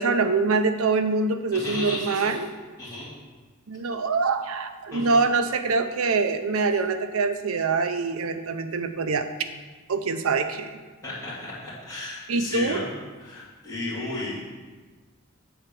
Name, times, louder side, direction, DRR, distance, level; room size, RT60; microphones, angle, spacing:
voice 1, 0.0-2.5 3.7-9.3 9.9-10.8 12.3-12.9, right 4 dB, 90° right, 9 dB, 0.6 m, -24 dB
voice 2, 1.5-2.3 2.8-3.1 4.9-5.1 11.0-12.9 13.2-14.4, left 2 dB, 15° left, -12 dB, 2.5 m, -34 dB
7.9 x 4.4 x 6.7 m, 1.4 s
head